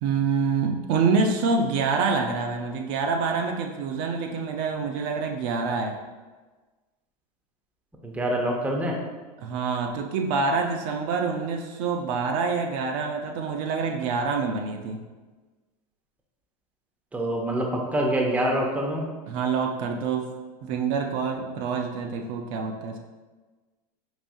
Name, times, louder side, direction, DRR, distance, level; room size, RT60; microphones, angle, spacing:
voice 1, 0.0-6.0 9.4-15.0 19.3-20.3 20.6-23.0, right 4 dB, 55° right, 3 dB, 0.5 m, -26 dB
voice 2, 8.0-9.0 17.1-19.0, right 1 dB, 5° right, 0 dB, 0.5 m, -25 dB
4.9 x 2.6 x 2.6 m, 1.3 s
hypercardioid pair, 110°, 20 cm